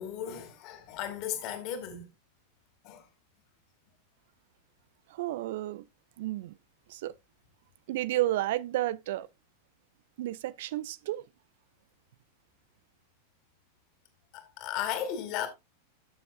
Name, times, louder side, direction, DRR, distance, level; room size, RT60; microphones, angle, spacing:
voice 1, 0.0-2.1 2.8-3.1 14.3-15.5, left 10 dB, 40° left, 2.7 m, -35 dB
voice 2, 5.1-5.8 6.2-6.5 6.9-7.1 7.9-9.3 10.2-11.2, right 15 dB, 55° right, 0.5 m, -31 dB
13.0 x 7.6 x 2.4 m
figure-of-eight pair, 90°, 0 cm